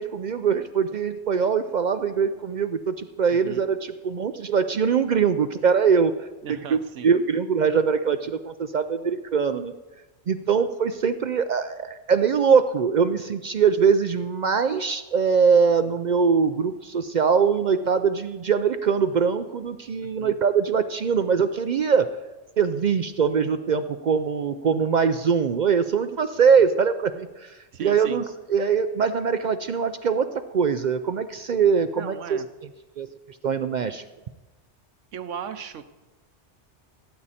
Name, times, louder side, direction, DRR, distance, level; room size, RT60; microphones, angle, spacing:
voice 1, 0.0-6.3 6.7-9.7 10.3-22.1 22.6-30.3 30.5-32.4 33.0-33.1 33.4-34.0, right 6 dB, 60° right, 10 dB, 0.4 m, -22 dB
voice 2, 3.3-3.6 6.4-7.1 20.2-20.4 27.7-28.2 31.9-32.5 35.1-35.8, right 8 dB, 90° right, 11 dB, 1.1 m, -37 dB
17.0 x 8.7 x 4.2 m, 1.1 s
omnidirectional pair, 1.2 m